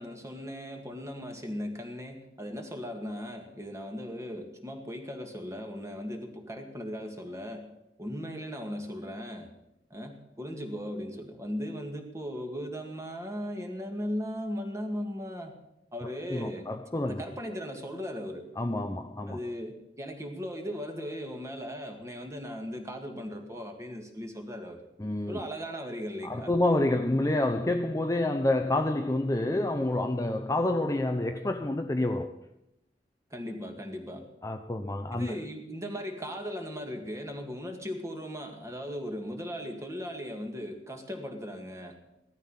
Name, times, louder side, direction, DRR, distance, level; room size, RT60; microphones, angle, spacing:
voice 1, 0.0-7.7 8.0-9.5 9.9-15.5 15.9-16.7 17.1-18.5 19.3-24.8 25.3-26.5 33.3-34.3 35.1-42.0, equal, 15° right, 2.0 m, -37 dB
voice 2, 16.3-17.2 18.6-19.4 25.0-25.4 26.2-32.3 34.4-35.3, left 1 dB, 20° left, 0.6 m, -28 dB
16.5 x 13.0 x 5.7 m
head